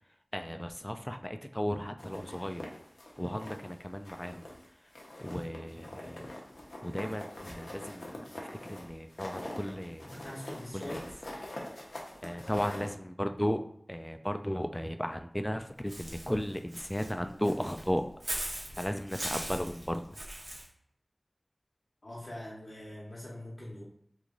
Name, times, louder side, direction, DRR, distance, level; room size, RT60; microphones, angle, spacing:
voice 1, 0.3-2.7 3.2-4.4 5.2-6.3 6.8-10.2 10.7-11.0 12.2-13.6 13.9-20.2, equal, 15° left, 7 dB, 0.3 m, -35 dB
sound 1, 2.0-3.7 4.1-4.7 4.9-12.9, left 1 dB, 90° left, 0.7 m, -44 dB
voice 2, 10.1-11.1 22.0-23.8, left 1 dB, 55° left, -5 dB, 0.9 m, -42 dB
Walk footsteps / Bird, 15.9-20.6, right 1 dB, 60° right, 1.0 m, -40 dB
3.0 x 2.5 x 3.7 m, 0.70 s
wide cardioid pair, 45°, 0 cm